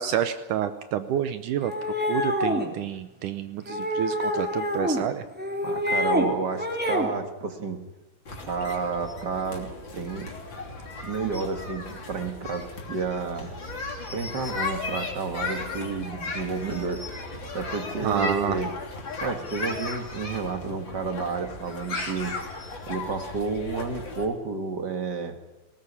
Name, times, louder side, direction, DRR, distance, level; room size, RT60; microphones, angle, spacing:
voice 1, 0.0-1.7 2.1-5.2 18.0-18.6, right 10 dB, 70° right, 11 dB, 2.2 m, -28 dB
sound 1, 1.6-2.7 3.7-5.0 5.4-6.3 6.6-7.1, left 1 dB, 5° right, 2.7 m, -26 dB
voice 2, 5.6-7.8 8.4-10.3 11.0-13.5 14.1-17.0 17.5-18.8 19.2-22.3 22.9-25.3, right 4 dB, 40° right, 7 dB, 1.7 m, -31 dB
sound 2, 8.3-24.3, left 3 dB, 35° left, 3.4 m, -36 dB
19.0 x 19.0 x 9.9 m, 1.0 s
omnidirectional pair, 4.0 m